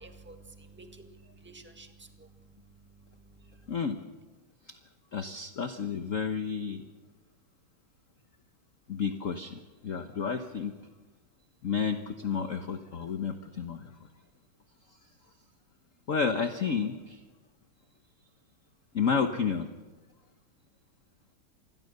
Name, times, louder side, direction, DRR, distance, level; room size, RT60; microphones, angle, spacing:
voice 1, 0.0-2.3, right 3 dB, 5° right, 5 dB, 1.6 m, -51 dB
voice 2, 5.1-6.8 8.9-10.7 11.6-13.9 16.1-17.2 18.9-19.7, left 6 dB, 45° left, 7 dB, 1.2 m, -31 dB
27.0 x 20.5 x 6.7 m, 1.2 s
omnidirectional pair, 2.3 m